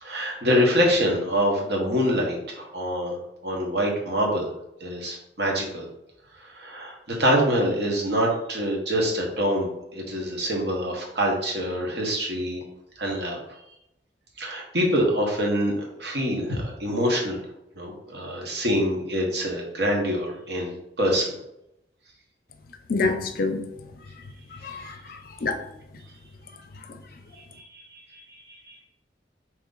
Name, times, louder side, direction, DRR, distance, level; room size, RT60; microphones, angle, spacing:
voice 1, 0.0-3.2 3.4-4.5 4.8-5.9 6.5-12.6 13.0-13.4 14.4-17.4 17.8-21.4 27.4-28.8, equal, 70° right, -1 dB, 1.1 m, -25 dB
voice 2, 22.9-23.6 24.6-25.6, left 3 dB, 55° left, 6 dB, 0.5 m, -27 dB
3.9 x 3.0 x 3.8 m, 0.83 s
head